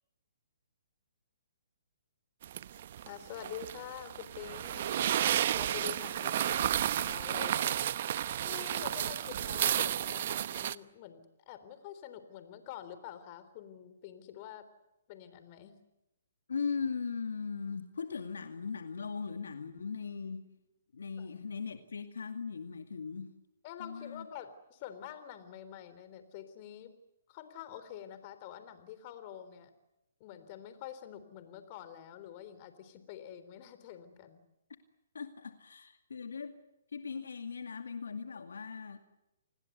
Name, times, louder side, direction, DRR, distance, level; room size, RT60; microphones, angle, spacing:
sound 1, 2.4-10.8, right 11 dB, 50° right, 0.9 m, -32 dB
voice 1, 3.1-5.1 5.6-7.8 8.4-14.7 15.1-15.8 21.2-21.3 23.6-26.9 27.3-29.7 30.2-34.4, left 10 dB, 35° left, 11 dB, 3.7 m, -47 dB
voice 2, 16.5-20.4 20.9-23.3 23.8-24.3 35.1-36.6 36.9-39.0, left 5 dB, 80° left, 8 dB, 2.2 m, -39 dB
29.5 x 20.5 x 8.2 m, 0.89 s
hypercardioid pair, 140°, 0 cm